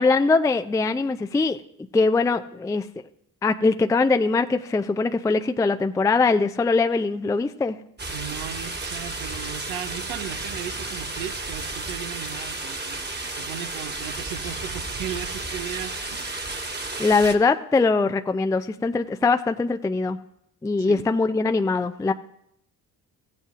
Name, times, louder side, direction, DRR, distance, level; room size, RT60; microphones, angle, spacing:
voice 1, 0.0-1.6 1.9-2.9 3.4-7.8 17.0-20.2 20.6-22.1, left 3 dB, 5° left, 9 dB, 0.4 m, -22 dB
sound 1, 8.0-17.3, right 2 dB, 20° right, 1.5 m, -32 dB
voice 2, 8.1-16.4 20.8-21.0, right 10 dB, 75° right, 9 dB, 0.9 m, -36 dB
16.5 x 8.2 x 2.5 m, 0.75 s
hypercardioid pair, 45°, 50 cm